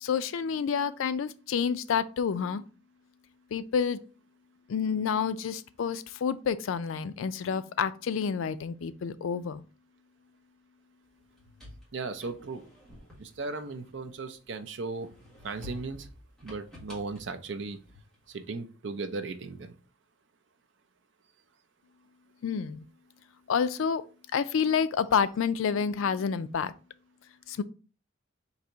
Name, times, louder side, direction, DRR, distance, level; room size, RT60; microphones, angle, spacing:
voice 1, 0.0-2.6 3.5-4.0 4.7-9.6 22.4-22.8 23.5-24.0 24.3-26.7 27.6-27.7, left 6 dB, 75° left, 0.4 m, -29 dB
sound 1, 11.2-14.5 14.9-18.3, left 1 dB, ahead, 1.4 m, -50 dB
voice 2, 11.9-12.6 13.2-15.1 15.4-16.1 16.4-17.8 18.3-19.7, right 3 dB, 65° right, 0.6 m, -36 dB
3.9 x 2.8 x 4.4 m
head